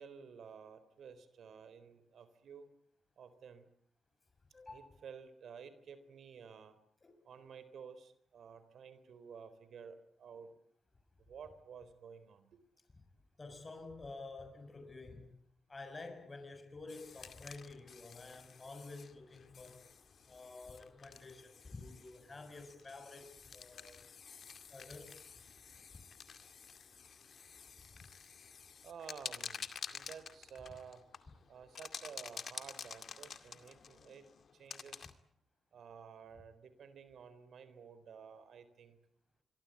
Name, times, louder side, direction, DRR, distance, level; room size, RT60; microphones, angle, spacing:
voice 1, 0.0-2.7 3.2-3.7 4.7-6.8 7.2-10.6 11.2-12.6 28.8-31.0 31.5-34.3 34.5-35.1 35.7-39.0, right 6 dB, 75° right, 3.9 m, -53 dB
voice 2, 4.5-4.9 7.0-7.1 13.4-15.3 15.7-19.8 20.3-24.0 24.7-25.1 27.9-28.1, left 3 dB, 30° left, 6.4 m, -50 dB
sound 1, 16.9-35.1, left 6 dB, 60° left, 2.2 m, -50 dB
26.0 x 24.0 x 8.4 m
cardioid pair, 70°, 0 cm